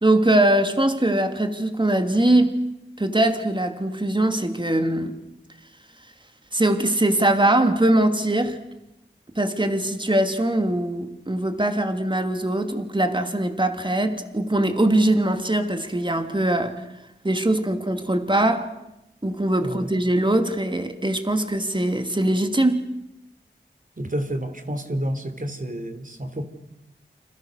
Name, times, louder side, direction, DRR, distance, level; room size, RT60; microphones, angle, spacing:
voice 1, 0.0-2.6 3.0-5.2 6.5-8.6 9.3-16.8 17.2-18.7 19.2-22.9, right 1 dB, 25° right, 6 dB, 2.9 m, -22 dB
voice 2, 24.0-26.4, right 1 dB, 45° right, 8 dB, 3.7 m, -29 dB
29.5 x 27.0 x 6.7 m, 0.90 s
wide cardioid pair, 50°, 20 cm